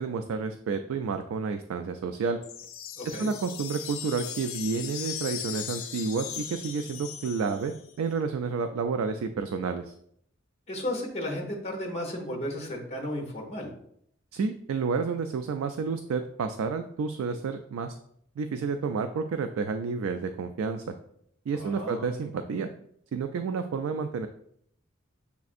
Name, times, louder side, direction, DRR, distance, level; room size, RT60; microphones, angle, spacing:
voice 1, 0.0-2.4 3.0-9.9 14.3-17.9 18.4-20.8 21.5-22.7 23.1-24.3, right 5 dB, 80° right, 7 dB, 0.3 m, -30 dB
sound 1, 2.4-7.9, left 10 dB, 75° left, 0.4 m, -38 dB
voice 2, 3.0-3.3 10.7-13.7 21.5-22.2, left 1 dB, 30° left, 0 dB, 0.9 m, -34 dB
6.8 x 2.5 x 2.5 m, 0.69 s
head